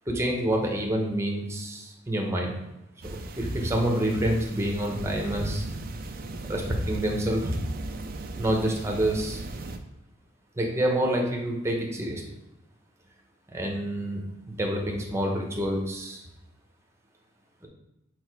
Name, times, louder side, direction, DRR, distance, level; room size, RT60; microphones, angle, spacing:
voice 1, 0.1-2.5 3.0-5.7 6.4-7.6 8.4-9.4 10.6-12.2 13.5-14.2 14.5-16.2, right 1 dB, 15° right, 1 dB, 0.9 m, -27 dB
sound 1, 3.0-9.8, right 2 dB, 50° right, 0.5 m, -37 dB
4.8 x 4.1 x 4.7 m, 0.91 s
head